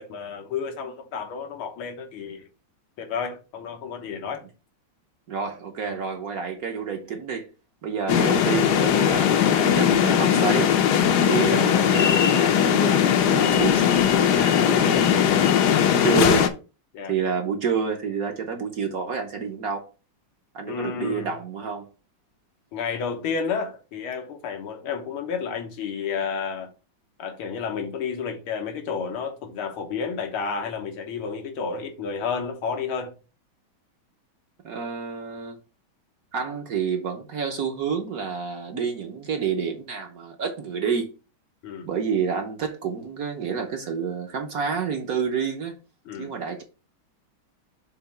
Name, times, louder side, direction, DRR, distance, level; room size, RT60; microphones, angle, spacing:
voice 1, 0.0-2.5 3.0-4.5 11.1-11.3 16.9-17.1 20.7-21.3 22.7-26.7 27.2-33.1 41.6-41.9 46.1-46.3, left 6 dB, 90° left, 2.0 m, -31 dB
voice 2, 5.3-7.5 7.8-10.8 11.2-16.5 17.1-19.9 20.5-21.9 34.6-35.6 36.3-41.1 41.8-45.7 46.2-46.6, right 6 dB, 55° right, 1.1 m, -29 dB
sound 1, 8.1-16.5, left 9 dB, 65° left, 1.1 m, -19 dB
6.9 x 3.1 x 5.6 m
omnidirectional pair, 2.3 m